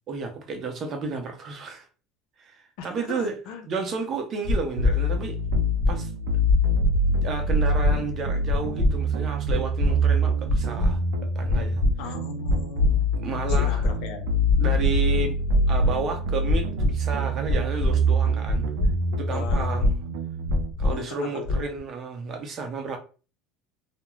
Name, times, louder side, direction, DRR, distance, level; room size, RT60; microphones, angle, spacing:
voice 1, 0.1-1.9 2.4-3.4 3.7-5.4 5.9-6.1 7.1-11.8 12.9-13.9 14.6-15.4 15.7-18.7 19.2-20.0 20.8-23.0, right 4 dB, 40° right, 0.7 m, -32 dB
voice 2, 2.8-3.7 12.0-13.1 13.6-14.3 19.1-19.9 20.8-21.6, left 5 dB, 75° left, 0.7 m, -38 dB
sound 1, 4.4-4.9 5.4-5.9 6.4-6.9 7.4-7.9 8.4-8.9 9.4-9.9 10.4-10.9 11.4-11.9 12.4-12.9 13.4-13.9 14.4-14.9 15.4-15.9 16.4-16.9 17.4-17.9 18.4-18.9 19.4-19.9 20.4-20.9 21.4-21.8, left 1 dB, 45° left, 0.9 m, -22 dB
sound 2, 4.8-20.7, equal, 85° right, 0.4 m, -25 dB
2.3 x 2.1 x 3.1 m
supercardioid pair, 115°, 0 cm